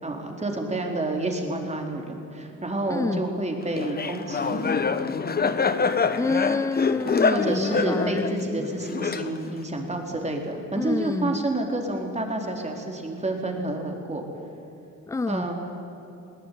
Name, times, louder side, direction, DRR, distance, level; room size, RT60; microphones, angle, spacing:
voice 1, 0.0-4.7 7.3-14.2 15.3-15.5, right 2 dB, 20° right, 2 dB, 4.0 m, -29 dB
voice 2, 2.9-3.3 6.2-8.7 10.8-11.5 15.1-15.5, left 3 dB, 10° left, 14 dB, 0.4 m, -28 dB
Laughter, 3.8-9.6, left 5 dB, 30° left, 1.2 m, -25 dB
21.5 x 18.0 x 9.4 m, 2.8 s
cardioid pair, 90°, 30 cm